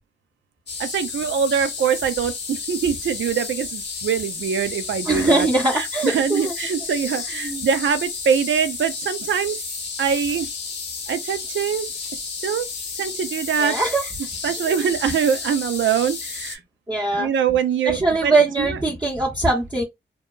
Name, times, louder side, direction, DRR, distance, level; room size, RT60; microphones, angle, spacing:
sound 1, 0.7-16.6, left 5 dB, 60° left, 0.9 m, -32 dB
voice 1, 0.8-5.5 5.7-9.6 10.0-10.5 11.1-11.9 12.4-12.7 13.0-13.8 14.4-16.6 17.2-18.8, right 7 dB, 75° right, 0.5 m, -23 dB
voice 2, 5.0-6.5 7.4-7.7 13.6-14.1 14.7-14.8 16.9-17.3 17.8-19.8, right 2 dB, 20° right, 0.9 m, -21 dB
2.7 x 2.3 x 2.3 m
cardioid pair, 50°, 20 cm